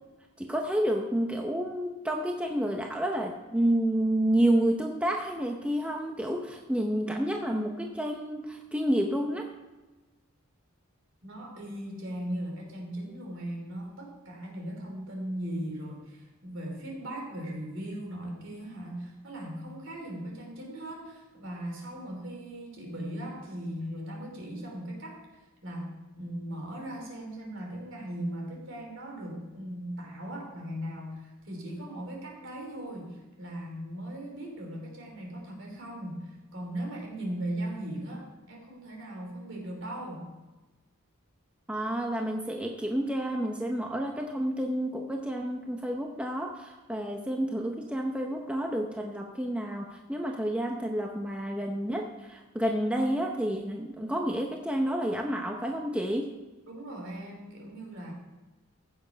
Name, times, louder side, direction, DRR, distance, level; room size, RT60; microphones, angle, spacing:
voice 1, 0.4-9.5 41.7-56.3, right 1 dB, 5° right, 1 dB, 0.7 m, -29 dB
voice 2, 11.2-40.3 56.7-58.1, right 1 dB, 60° right, 0 dB, 3.2 m, -38 dB
15.0 x 7.1 x 5.2 m, 1.2 s
head